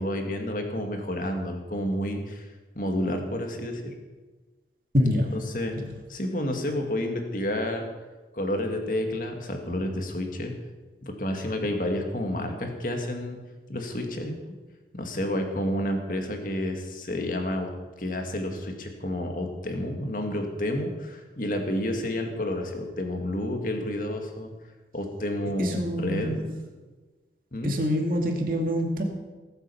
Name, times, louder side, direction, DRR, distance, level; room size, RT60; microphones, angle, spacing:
voice 1, 0.0-2.5 2.8-3.9 5.5-5.7 6.1-7.9 8.3-10.5 11.0-13.4 13.7-14.3 14.9-17.7 18.0-24.5 24.9-26.4 27.5-27.7, left 1 dB, 50° left, 3 dB, 2.1 m, -30 dB
voice 2, 4.9-5.4 5.7-5.9 25.6-26.5 27.6-29.0, equal, 50° right, 2 dB, 2.4 m, -26 dB
18.5 x 8.1 x 7.1 m, 1.3 s
head